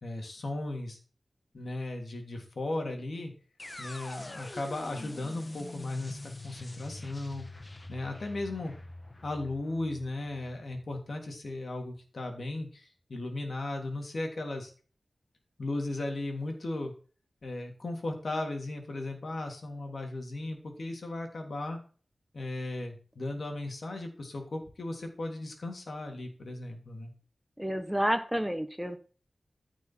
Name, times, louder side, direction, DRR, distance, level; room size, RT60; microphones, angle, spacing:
voice 1, 0.0-1.0 1.5-3.3 3.8-7.4 7.9-8.7 9.2-14.7 15.6-16.9 17.4-21.8 22.3-27.1, left 2 dB, 65° left, 3 dB, 3.2 m, -36 dB
sound 1, 3.6-11.5, left 2 dB, 30° left, 1.3 m, -45 dB
voice 2, 27.6-29.0, equal, 5° right, 8 dB, 1.3 m, -30 dB
15.0 x 6.2 x 4.6 m, 0.38 s
wide cardioid pair, 90°, 0 cm